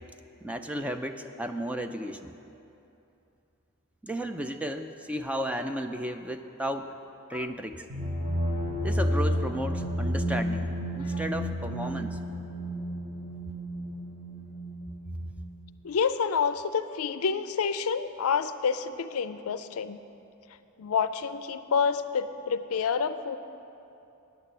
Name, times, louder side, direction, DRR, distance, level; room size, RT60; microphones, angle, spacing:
voice 1, 0.4-2.4 4.0-6.9 7.3-7.9 8.8-12.2, equal, 5° right, 7 dB, 0.4 m, -34 dB
sound 1, 7.9-15.6, equal, 30° right, 1.1 m, -31 dB
voice 2, 15.8-20.0 20.8-23.4, left 6 dB, 70° left, 11 dB, 0.5 m, -28 dB
9.5 x 7.6 x 8.4 m, 2.8 s
head